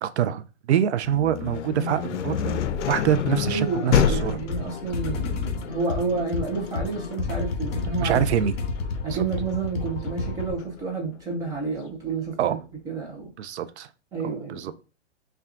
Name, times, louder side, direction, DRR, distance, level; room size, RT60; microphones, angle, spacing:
voice 1, 0.0-4.4 8.0-8.5 12.4-12.6 13.4-13.9 14.2-14.7, right 10 dB, 65° right, 0.5 m, -25 dB
sound 1, 1.0-10.8, left 8 dB, 80° left, 0.6 m, -28 dB
voice 2, 3.4-8.2 9.0-12.6 12.9-13.3 14.1-14.7, right 4 dB, 10° right, 0.5 m, -30 dB
sound 2, 4.4-10.5, left 4 dB, 60° left, 1.4 m, -30 dB
5.7 x 2.3 x 2.5 m
hypercardioid pair, 145°, 36 cm